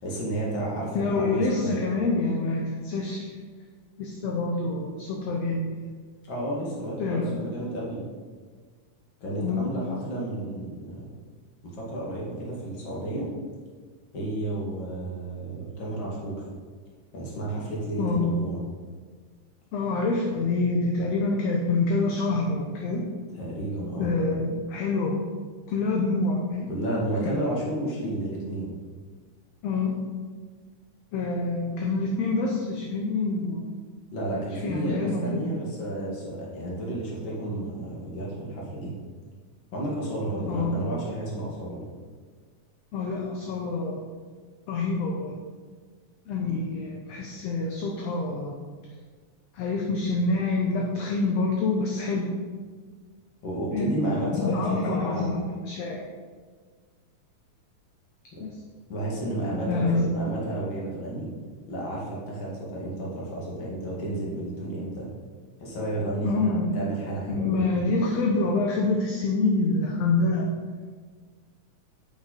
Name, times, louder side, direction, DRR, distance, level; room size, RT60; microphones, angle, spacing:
voice 1, 0.0-1.8 6.2-8.0 9.2-11.1 11.6-13.3 14.1-16.4 17.1-18.6 23.4-24.1 26.7-28.7 34.1-38.9 39.7-41.8 53.4-55.3 58.3-58.4 58.9-61.3 61.7-65.1 65.6-67.6, right 1 dB, 40° left, -4 dB, 2.5 m, -32 dB
voice 2, 1.0-3.3 4.0-5.7 7.0-7.5 9.4-9.7 18.0-18.3 19.7-23.1 24.0-25.2 25.7-26.7 29.6-30.0 31.1-33.7 34.6-35.5 40.5-40.8 42.9-44.0 44.7-45.4 46.3-48.6 49.5-52.3 53.7-54.0 54.3-56.0 58.4-58.5 59.7-60.1 66.2-66.8 67.3-70.5, left 3 dB, 70° left, 0 dB, 1.8 m, -26 dB
8.3 x 8.3 x 4.1 m, 1.5 s
omnidirectional pair, 3.4 m